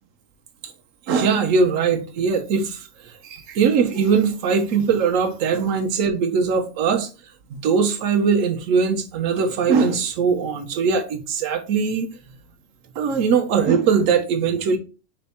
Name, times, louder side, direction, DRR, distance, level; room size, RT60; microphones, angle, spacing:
voice 1, 1.1-7.1 7.5-12.1 12.9-14.8, right 5 dB, 80° right, 1.0 m, -21 dB
4.3 x 2.1 x 4.1 m
omnidirectional pair, 1.4 m